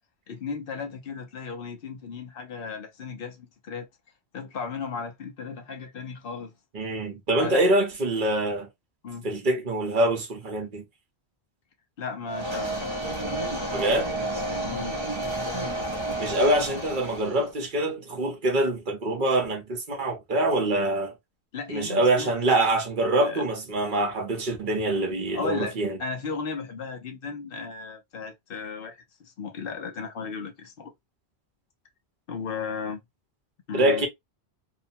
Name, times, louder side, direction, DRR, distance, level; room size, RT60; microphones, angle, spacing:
voice 1, 0.3-3.9 4.3-6.5 7.4-7.7 9.0-9.3 12.0-12.7 14.6-15.0 21.5-22.3 23.2-23.4 25.3-25.7 26.0-30.9 32.3-33.0 33.7-34.1, left 5 dB, 60° left, 0.9 m, -35 dB
voice 2, 6.7-8.7 9.2-10.8 13.7-14.1 16.2-21.1 21.7-26.0 33.7-34.1, right 1 dB, 50° right, 1.0 m, -25 dB
sound 1, 12.3-17.5, right 1 dB, 30° right, 0.7 m, -31 dB
2.8 x 2.1 x 2.7 m
omnidirectional pair, 1.1 m